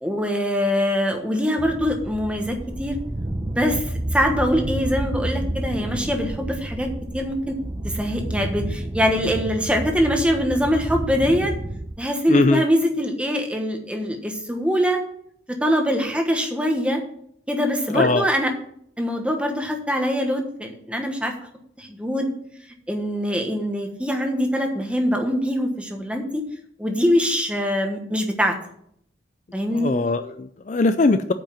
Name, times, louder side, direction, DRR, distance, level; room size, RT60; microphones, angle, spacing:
voice 1, 0.0-3.0 3.5-6.9 7.1-7.6 7.8-11.5 12.0-15.0 15.5-17.0 17.5-18.5 19.0-21.3 21.8-22.3 22.9-26.4 26.8-28.5 29.5-29.9, equal, 5° right, 3 dB, 1.2 m, -23 dB
sound 1, 1.6-12.0, right 1 dB, 25° right, 0.7 m, -30 dB
voice 2, 12.3-12.6 17.9-18.3 29.7-31.3, left 3 dB, 40° left, 10 dB, 0.4 m, -20 dB
8.9 x 5.4 x 7.2 m, 0.69 s
head